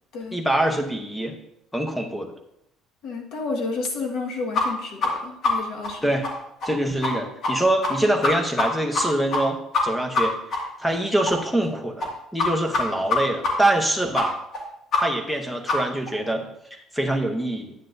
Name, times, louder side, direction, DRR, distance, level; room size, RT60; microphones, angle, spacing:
voice 1, 0.3-1.4 1.7-2.3 6.0-6.3 6.6-14.4 15.0-17.7, right 1 dB, 5° left, 5 dB, 0.8 m, -25 dB
voice 2, 3.0-6.1, left 3 dB, 60° left, 2 dB, 1.5 m, -31 dB
sound 1, 4.5-4.6 5.0-5.1 5.4-5.5 5.8-5.9 6.2-6.3 6.6-6.7 7.0-7.1 7.4-7.5 7.8-7.9 8.2-8.7 8.9-9.0 9.3-9.4 9.7-9.8 10.1-10.2 10.5-10.6 10.9-11.0 11.3-11.4 11.6-11.7 12.0-12.1 12.4-12.5 12.7-12.8 13.1-13.2 13.4-13.5 13.8-13.9 14.2-14.3 14.5-14.6 14.9-15.0 15.3-15.4 15.7-15.8 16.1-16.2, left 4 dB, 35° left, 2.0 m, -23 dB
9.7 x 9.4 x 2.6 m, 0.78 s
cardioid pair, 175°, 0 cm